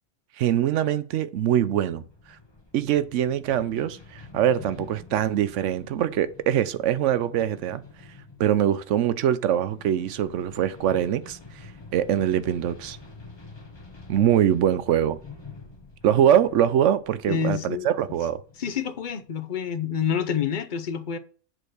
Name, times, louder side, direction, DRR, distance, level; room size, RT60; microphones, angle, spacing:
voice 1, 0.4-2.0 2.7-7.8 8.4-11.4 11.9-13.0 14.1-15.2 16.0-18.4, right 10 dB, 85° right, 0.9 m, -23 dB
sound 1, 1.8-19.4, left 3 dB, 20° left, 1.4 m, -47 dB
voice 2, 17.3-17.9 18.6-21.2, left 7 dB, 50° left, 0.8 m, -28 dB
7.9 x 4.5 x 6.3 m
omnidirectional pair, 1.2 m